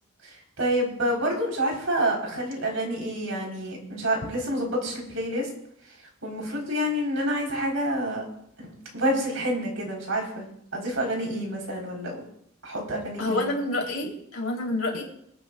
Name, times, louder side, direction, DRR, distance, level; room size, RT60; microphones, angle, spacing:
voice 1, 0.2-5.5 6.2-8.2 8.6-10.4 10.7-12.2 12.6-13.4, right 1 dB, 70° right, -1 dB, 4.3 m, -28 dB
voice 2, 13.2-15.0, left 2 dB, 70° left, 0 dB, 3.7 m, -28 dB
26.5 x 9.4 x 2.5 m, 0.72 s
head